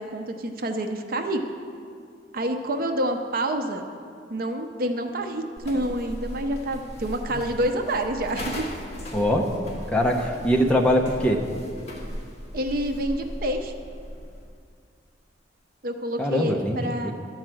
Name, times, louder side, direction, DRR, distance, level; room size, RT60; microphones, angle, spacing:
voice 1, 0.0-1.4 2.3-3.8 4.3-8.7 12.5-13.7 15.8-17.1, right 1 dB, 55° right, 5 dB, 0.6 m, -28 dB
sound 1, 5.6-14.5, equal, 35° left, 1.6 m, -37 dB
voice 2, 9.1-9.5 9.9-11.5 16.2-17.1, equal, 5° left, 0 dB, 0.7 m, -22 dB
11.5 x 4.7 x 7.6 m, 2.3 s
head